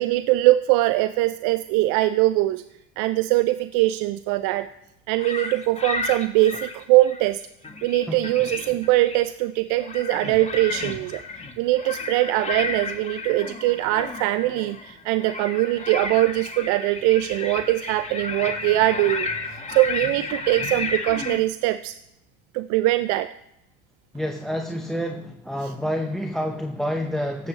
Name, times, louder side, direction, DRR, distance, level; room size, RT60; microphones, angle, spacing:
voice 1, 0.0-2.6 3.0-4.7 5.1-7.4 7.8-11.2 11.6-22.0 22.5-23.3, right 17 dB, 65° right, 13 dB, 0.5 m, -22 dB
sound 1, 5.2-7.3 7.6-9.3 9.7-21.4, left 3 dB, 20° left, 1.5 m, -32 dB
voice 2, 24.1-27.5, equal, ahead, 5 dB, 0.8 m, -28 dB
17.0 x 7.8 x 3.3 m, 0.86 s
supercardioid pair, 85°, 32 cm